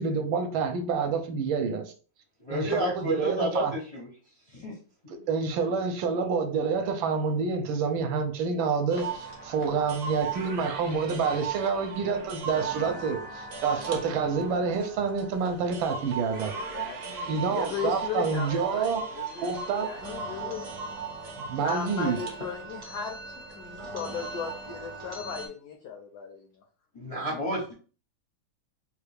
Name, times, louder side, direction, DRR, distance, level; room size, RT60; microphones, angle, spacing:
voice 1, 0.0-1.8 2.5-3.7 5.1-9.1 9.5-16.5 17.3-19.0 19.4-19.9 21.4-22.2, right 5 dB, 80° right, 1.3 m, -28 dB
voice 2, 2.4-4.1 4.5-4.8 26.9-27.7, equal, 50° left, 0.4 m, -30 dB
sound 1, 8.9-25.5, right 4 dB, 55° right, 0.9 m, -38 dB
voice 3, 9.0-9.6 16.7-21.0 21.5-26.6, left 7 dB, 80° left, 0.8 m, -37 dB
3.4 x 2.3 x 3.3 m
omnidirectional pair, 2.2 m